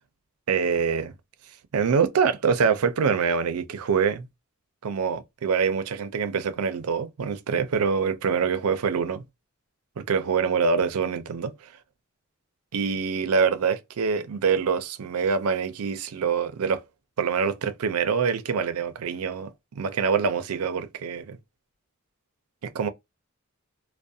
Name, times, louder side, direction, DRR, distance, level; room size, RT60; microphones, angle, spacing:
voice 1, 0.5-1.1 1.7-4.3 4.8-9.2 10.0-11.7 12.7-16.8 17.2-21.4 22.6-22.9, right 6 dB, 90° right, 0.5 m, -25 dB
2.6 x 2.1 x 2.3 m
head